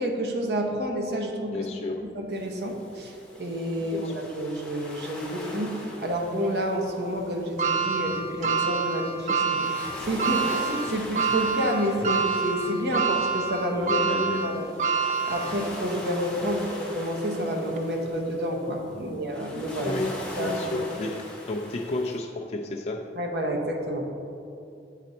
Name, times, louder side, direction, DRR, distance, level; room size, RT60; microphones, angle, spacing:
voice 1, 0.0-1.6 2.1-14.0 14.4-14.7 15.3-20.0 20.4-20.8 23.2-24.1, equal, 70° right, 1 dB, 0.8 m, -29 dB
voice 2, 1.5-2.0 3.9-4.1 12.0-12.1 13.7-14.7 16.4-16.6 18.9-19.2 19.8-23.1, left 2 dB, 35° left, 1 dB, 0.3 m, -32 dB
sound 1, 2.3-22.2, equal, 5° left, 0.7 m, -42 dB
sound 2, 7.6-15.9 16.4-16.5 17.7-17.8, right 5 dB, 40° right, 0.3 m, -27 dB
8.2 x 4.1 x 4.2 m, 2.7 s
head